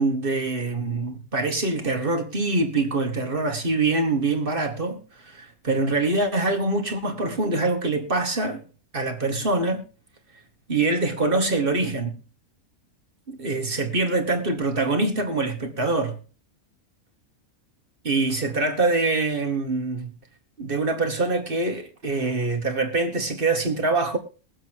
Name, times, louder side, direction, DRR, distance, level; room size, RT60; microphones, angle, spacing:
voice 1, 0.0-5.0 5.2-8.6 8.9-9.8 10.7-12.2 13.3-16.2 18.0-20.1 20.6-24.2, right 3 dB, 40° right, 2.2 m, -24 dB
22.0 x 7.8 x 3.0 m
omnidirectional pair, 1.5 m